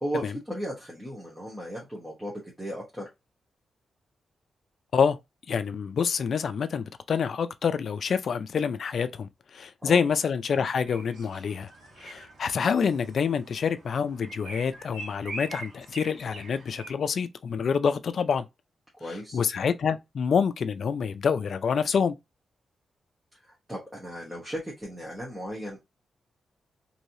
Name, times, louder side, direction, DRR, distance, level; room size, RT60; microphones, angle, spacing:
voice 1, 0.0-2.3 2.6-3.1 9.8-10.0 19.0-19.4 23.7-25.8, equal, 10° right, 1.0 m, -35 dB
voice 2, 5.5-11.7 12.0-18.4 19.0-22.2, left 6 dB, 55° left, 0.4 m, -27 dB
sound 1, 10.9-16.9, right 2 dB, 85° right, 1.3 m, -44 dB
3.1 x 2.7 x 2.6 m
wide cardioid pair, 160°, 0 cm